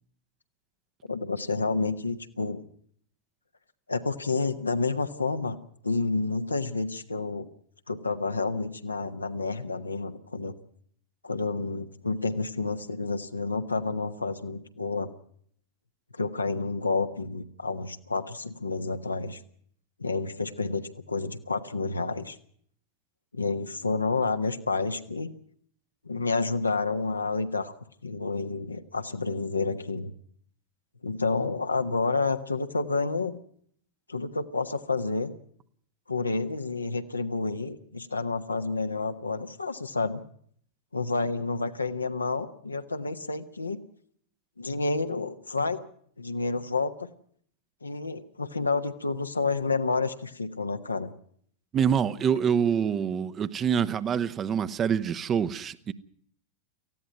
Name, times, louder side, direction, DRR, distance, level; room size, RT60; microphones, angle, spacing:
voice 1, 1.1-2.6 3.9-5.6 5.8-7.5 7.9-10.5 11.2-15.1 16.1-19.4 20.0-20.8 21.1-22.3 23.3-25.3 26.0-27.7 28.0-30.1 31.0-33.4 34.1-35.3 36.1-40.2 40.9-43.8 44.6-45.8 46.2-46.9 47.8-51.1, left 3 dB, 80° left, 7 dB, 1.3 m, -29 dB
voice 2, 51.7-55.9, right 7 dB, 25° right, 13 dB, 0.9 m, -26 dB
18.5 x 15.0 x 9.2 m, 0.63 s
figure-of-eight pair, 90°, 0 cm